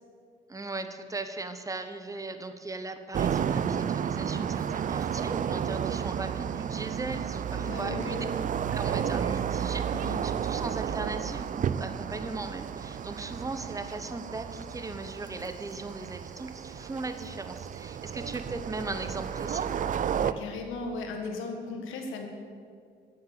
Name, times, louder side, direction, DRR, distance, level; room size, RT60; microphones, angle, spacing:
voice 1, 0.5-8.3 8.7-19.7, right 3 dB, 15° right, 9 dB, 0.7 m, -38 dB
sound 1, 3.1-20.3, right 8 dB, 40° right, 0.4 m, -32 dB
voice 2, 7.5-8.5 9.9-10.2 20.2-22.3, left 3 dB, 85° left, 3 dB, 1.5 m, -37 dB
8.7 x 7.7 x 6.7 m, 2.2 s
cardioid pair, 90°, 20 cm